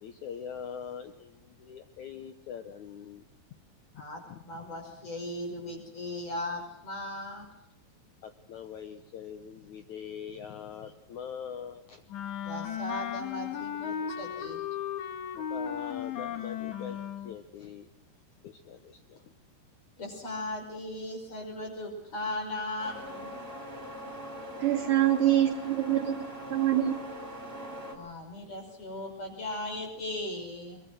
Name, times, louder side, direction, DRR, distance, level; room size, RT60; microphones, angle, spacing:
voice 1, 0.0-3.2 3.9-4.0 4.3-4.4 8.2-12.0 15.3-17.0 17.2-17.9 18.4-19.3, left 7 dB, 75° left, 8 dB, 1.8 m, -43 dB
voice 2, 3.9-7.5 12.4-14.6 20.0-23.3 27.9-30.8, left 1 dB, 40° left, 2 dB, 6.7 m, -37 dB
Wind instrument woodwind instrument, 12.1-17.3, left 9 dB, 55° left, 2.6 m, -36 dB
sound 1, 22.8-27.9, equal, 15° right, 4.2 m, -41 dB
voice 3, 24.6-27.0, right 12 dB, 60° right, 3 dB, 2.6 m, -25 dB
23.0 x 22.0 x 6.3 m, 0.78 s
omnidirectional pair, 4.7 m